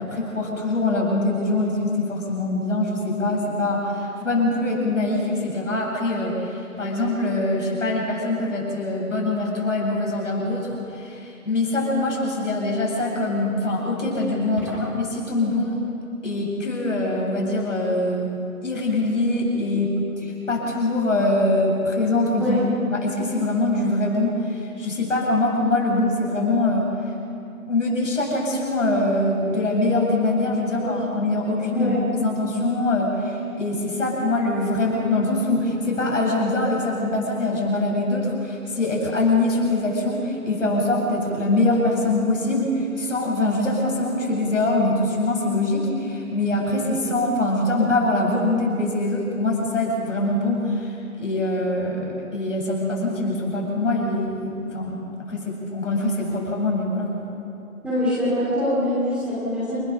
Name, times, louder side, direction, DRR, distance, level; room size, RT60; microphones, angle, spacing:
voice 1, 0.0-15.9 16.2-18.3 18.6-19.9 20.2-22.6 22.9-26.9 27.7-57.2, left 2 dB, 60° left, -1 dB, 7.7 m, -23 dB
voice 2, 57.8-59.8, left 1 dB, ahead, -10 dB, 2.9 m, -24 dB
29.5 x 16.0 x 6.9 m, 2.6 s
figure-of-eight pair, 160°, 42 cm